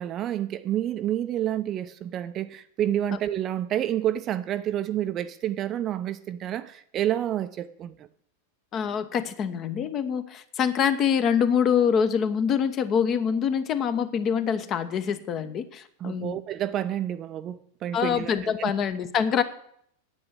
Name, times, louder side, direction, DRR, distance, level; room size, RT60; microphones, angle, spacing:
voice 1, 0.0-8.1 16.0-18.7, right 11 dB, 30° right, 0.6 m, -29 dB
voice 2, 8.7-16.4 17.9-19.4, left 7 dB, 30° left, 1.1 m, -25 dB
9.7 x 8.7 x 8.2 m
figure-of-eight pair, 90°, 0 cm